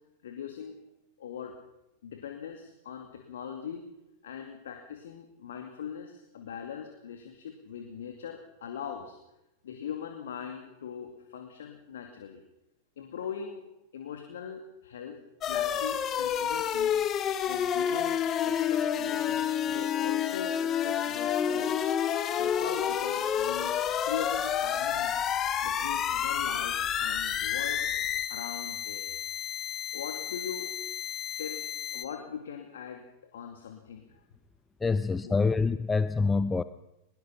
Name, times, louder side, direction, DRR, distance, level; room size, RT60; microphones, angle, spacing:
voice 1, 0.2-0.8 1.2-1.6 2.0-3.8 4.2-9.2 9.6-12.4 13.0-13.6 13.9-17.0 17.5-21.8 22.3-25.2 25.6-27.9 28.3-29.1 29.9-30.7 31.4-31.7 31.9-34.2 35.2-35.5, left 7 dB, 60° left, 5 dB, 2.5 m, -41 dB
sound 1, 15.4-32.0, left 9 dB, 30° left, 1.9 m, -30 dB
voice 2, 34.8-36.6, left 4 dB, 15° left, 14 dB, 0.7 m, -26 dB
22.5 x 21.5 x 5.9 m, 0.89 s
figure-of-eight pair, 90°, 0 cm